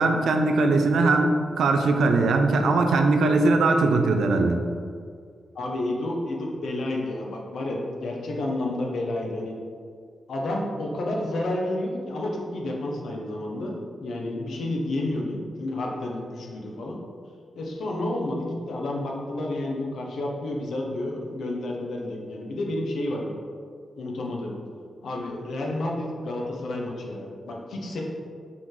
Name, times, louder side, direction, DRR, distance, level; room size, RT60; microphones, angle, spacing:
voice 1, 0.0-4.6, right 3 dB, 85° right, 4 dB, 0.6 m, -20 dB
voice 2, 5.5-9.6 10.3-17.0 17.5-23.3 24.0-24.5 25.0-28.0, left 1 dB, 80° left, -1 dB, 1.1 m, -30 dB
6.0 x 4.7 x 3.9 m, 2.1 s
cardioid pair, 80°, 0 cm